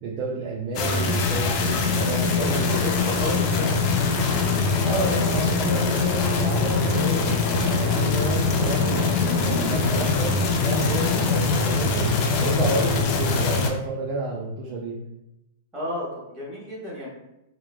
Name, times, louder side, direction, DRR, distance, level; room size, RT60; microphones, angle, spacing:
voice 1, 0.0-2.7 4.8-7.3 7.6-10.3 10.6-12.1 12.4-14.9, right 3 dB, 40° right, -4 dB, 0.5 m, -30 dB
sound 1, 0.7-13.7, left 4 dB, 45° left, 0.4 m, -23 dB
voice 2, 2.3-3.9 15.7-17.1, left 1 dB, 25° right, -5 dB, 1.3 m, -32 dB
2.9 x 2.0 x 2.3 m, 0.89 s
hypercardioid pair, 110°, 0 cm